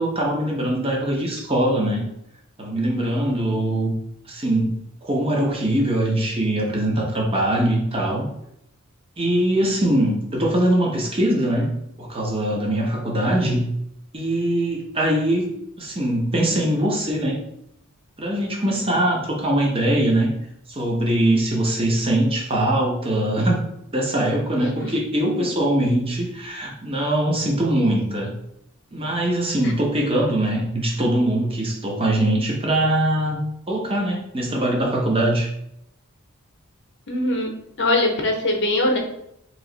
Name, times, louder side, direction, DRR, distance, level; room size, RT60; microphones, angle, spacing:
voice 1, 0.0-2.1 2.6-3.9 4.3-8.3 9.2-11.7 12.0-13.7 14.1-15.5 15.8-17.4 18.2-20.3 20.7-23.7 23.9-28.3 28.9-33.4 33.7-35.5, right 1 dB, 25° right, -1 dB, 0.8 m, -22 dB
voice 2, 37.1-37.5 37.8-39.0, left 1 dB, 55° left, 2 dB, 0.8 m, -21 dB
3.1 x 2.9 x 3.9 m, 0.77 s
head